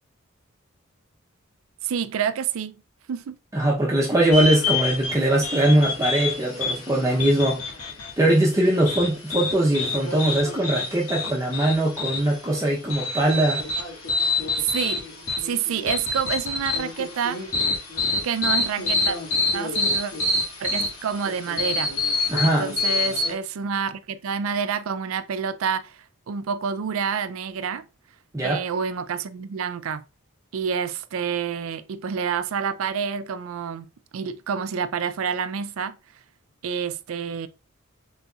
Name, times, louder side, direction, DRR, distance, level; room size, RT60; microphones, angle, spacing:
voice 1, 1.8-2.8 3.1-3.4 14.6-15.0 15.4-17.5 18.2-19.2 19.5-20.1 20.6-21.9 22.4-27.8 28.4-30.0 30.5-33.9 34.1-36.0 36.6-37.5, right 7 dB, 70° right, 0.4 m, -28 dB
voice 2, 3.5-7.7 8.2-13.6 22.3-22.7 28.3-28.6, right 1 dB, 15° right, 0.7 m, -21 dB
sound 1, 4.3-23.3, left 3 dB, 85° left, 1.6 m, -27 dB
4.0 x 3.9 x 2.3 m
head